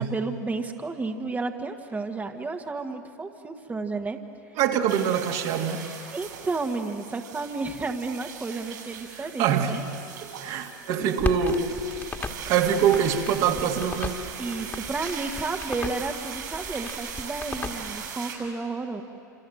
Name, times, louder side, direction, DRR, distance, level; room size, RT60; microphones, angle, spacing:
voice 1, 0.0-4.2 6.1-9.8 14.4-19.0, right 3 dB, 15° right, 4 dB, 1.5 m, -32 dB
voice 2, 4.6-5.9 9.4-9.8 10.4-11.7 12.5-14.2, right 8 dB, 60° right, 2 dB, 2.3 m, -24 dB
sound 1, 4.9-18.4, right 7 dB, 80° right, 6.6 m, -39 dB
Crackle, 11.2-18.1, left 3 dB, 20° left, 2.2 m, -36 dB
27.5 x 27.0 x 7.8 m, 2.6 s
hypercardioid pair, 95°, 10 cm